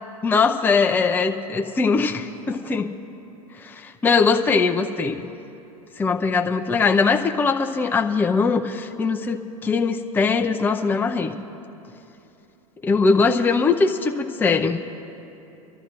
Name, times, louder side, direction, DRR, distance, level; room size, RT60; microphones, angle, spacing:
voice 1, 0.2-2.9 3.6-5.3 6.0-11.3 12.8-14.8, left 4 dB, 10° left, 4 dB, 0.6 m, -21 dB
29.0 x 13.0 x 2.5 m, 2.9 s
figure-of-eight pair, 90°, 19 cm